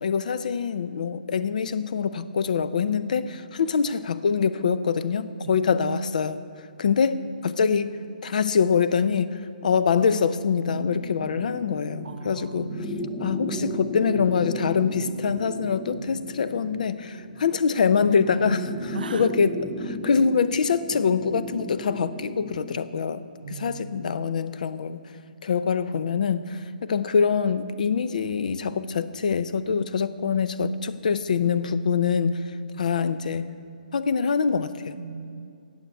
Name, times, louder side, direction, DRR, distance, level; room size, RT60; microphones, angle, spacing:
voice 1, 0.0-6.4 6.8-7.9 8.2-12.7 13.2-25.0 25.4-33.5 33.9-35.0, left 6 dB, 55° left, 13 dB, 0.5 m, -24 dB
sound 1, 10.6-23.0, left 1 dB, 5° left, 0.5 m, -36 dB
voice 2, 12.0-13.2 18.9-19.3 23.4-24.4 35.0-35.5, right 5 dB, 75° right, 15 dB, 0.4 m, -38 dB
9.3 x 7.7 x 8.4 m, 2.5 s
hypercardioid pair, 165°, 5 cm